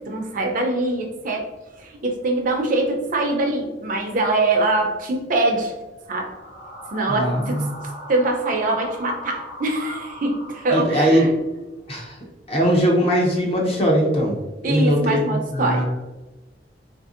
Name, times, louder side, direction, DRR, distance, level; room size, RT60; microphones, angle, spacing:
voice 1, 0.1-1.5 1.8-5.7 6.1-6.3 6.9-7.7 8.1-11.3 14.6-15.8, right 2 dB, 45° right, 2 dB, 0.6 m, -23 dB
sound 1, 6.0-11.1, equal, 60° left, 1.3 m, -39 dB
voice 2, 7.1-7.7 10.7-11.3 11.9-12.2 12.5-14.4 14.6-15.8, equal, 35° left, -2 dB, 0.7 m, -20 dB
3.8 x 2.6 x 2.5 m, 1.1 s
head